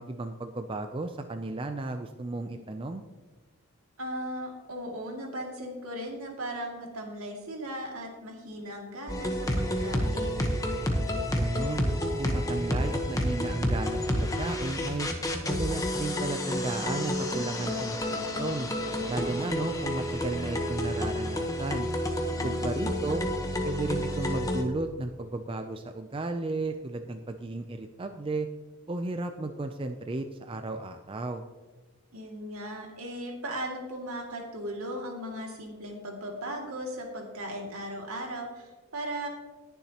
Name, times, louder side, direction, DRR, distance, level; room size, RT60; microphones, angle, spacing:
voice 1, 0.0-3.0 11.3-11.9 12.2-15.1 15.5-18.7 19.1-21.9 22.4-23.2 23.6-28.5 28.9-31.4, right 2 dB, 25° right, 7 dB, 0.4 m, -34 dB
voice 2, 4.0-10.4 22.3-23.2 32.1-39.3, equal, 80° right, 1 dB, 2.3 m, -37 dB
sound 1, 9.1-24.6, left 1 dB, 15° left, 1.0 m, -30 dB
19.5 x 7.1 x 2.9 m, 1.3 s
head